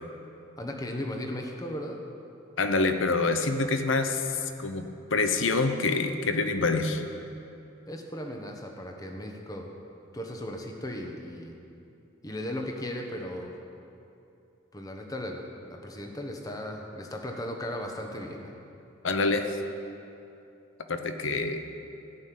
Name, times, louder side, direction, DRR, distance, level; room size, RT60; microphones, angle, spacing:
voice 1, 0.6-2.0 7.9-9.7 10.1-11.5 12.2-13.5 14.7-18.6, left 1 dB, 20° left, 2 dB, 1.2 m, -36 dB
voice 2, 2.6-7.0 19.0-19.6 20.9-21.7, left 3 dB, 75° left, 7 dB, 0.9 m, -26 dB
14.0 x 6.6 x 9.3 m, 2.8 s
head